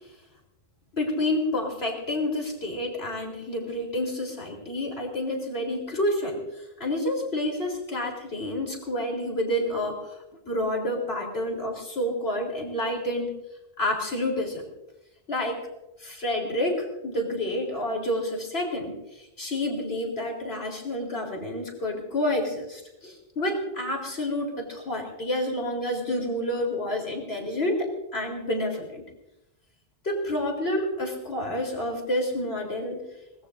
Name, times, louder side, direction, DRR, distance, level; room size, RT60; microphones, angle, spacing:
voice 1, 0.9-10.0 10.5-13.4 13.8-14.7 15.3-15.6 16.0-29.1 30.0-33.0, left 1 dB, 70° left, 1 dB, 4.1 m, -29 dB
23.5 x 20.0 x 2.6 m, 0.94 s
omnidirectional pair, 1.1 m